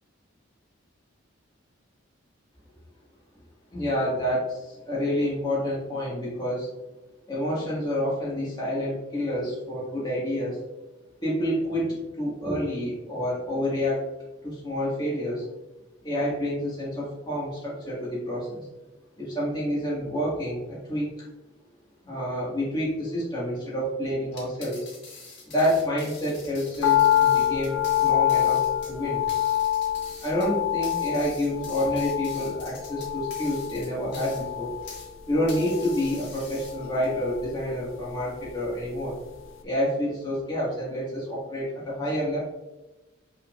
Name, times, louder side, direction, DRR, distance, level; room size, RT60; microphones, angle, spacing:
voice 1, 3.7-6.7 7.3-10.6 11.2-14.0 14.4-15.4 16.0-18.6 19.2-21.1 22.0-24.8 25.5-28.6 28.9-29.2 30.2-34.7 35.3-39.1 39.6-42.4, equal, 20° left, -7 dB, 1.8 m, -28 dB
sound 1, 24.3-35.1 35.5-37.1, left 4 dB, 55° left, 1.7 m, -45 dB
sound 2, 26.8-39.1 39.4-39.5, left 12 dB, 75° left, 0.7 m, -27 dB
6.5 x 6.0 x 2.5 m, 1.0 s
head